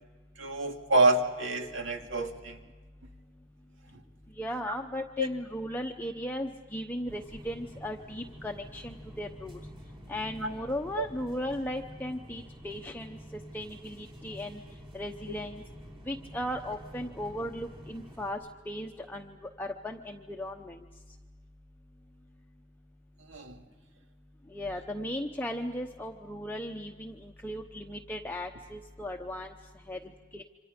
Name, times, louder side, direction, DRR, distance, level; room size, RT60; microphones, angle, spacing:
voice 1, 0.4-2.6 5.2-5.3 10.4-10.5 11.0-11.1 23.3-23.5, right 2 dB, 70° right, 4 dB, 2.3 m, -27 dB
voice 2, 4.4-9.6 10.1-13.2 13.5-14.6 14.9-15.6 16.1-18.4 18.7-20.8 24.5-29.5 29.9-30.4, left 1 dB, 10° left, 2 dB, 0.9 m, -36 dB
sound 1, 7.1-18.3, equal, 30° right, 5.3 m, -49 dB
27.5 x 26.0 x 5.2 m, 1.4 s
head